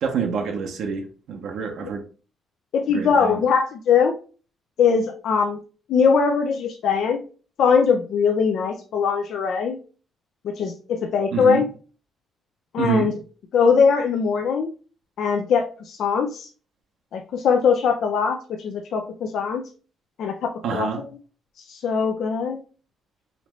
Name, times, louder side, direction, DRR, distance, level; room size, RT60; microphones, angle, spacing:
voice 1, 0.0-2.0 2.9-3.4 11.3-11.6 12.8-13.1 20.6-21.0, right 6 dB, 75° right, 0.7 m, -27 dB
voice 2, 2.7-4.2 4.8-5.6 5.9-7.2 7.6-9.8 10.4-11.7 12.7-13.1 13.5-14.7 15.2-16.5 17.1-19.6 20.2-20.9 21.7-22.6, left 6 dB, 70° left, 0.4 m, -21 dB
4.0 x 3.0 x 3.0 m
cardioid pair, 90°, 0 cm